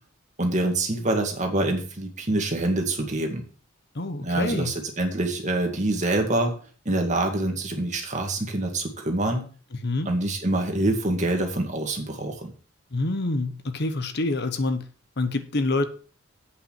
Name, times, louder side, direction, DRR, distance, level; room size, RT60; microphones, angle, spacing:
voice 1, 0.4-3.5 4.2-6.5 6.9-9.5 10.1-12.5, right 2 dB, 35° right, 3 dB, 2.1 m, -25 dB
voice 2, 3.9-4.7 9.8-10.1 12.9-14.9 15.2-15.9, left 2 dB, 55° left, 10 dB, 1.1 m, -26 dB
8.3 x 5.7 x 7.3 m, 0.40 s
head